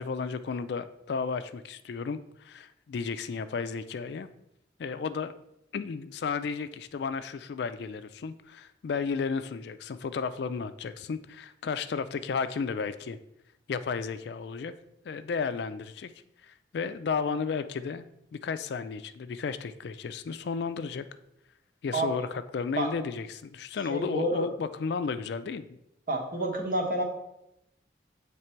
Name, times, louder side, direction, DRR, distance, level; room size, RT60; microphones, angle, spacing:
voice 1, 0.0-4.3 4.8-5.3 5.7-13.2 13.7-14.7 15.0-16.1 16.4-18.1 18.3-21.0 21.8-25.8, left 5 dB, 65° left, 12 dB, 0.3 m, -33 dB
voice 2, 21.9-22.3 22.8-22.9 23.9-24.5 26.1-27.0, right 1 dB, 45° right, 2 dB, 1.1 m, -29 dB
7.8 x 3.3 x 4.4 m, 0.84 s
head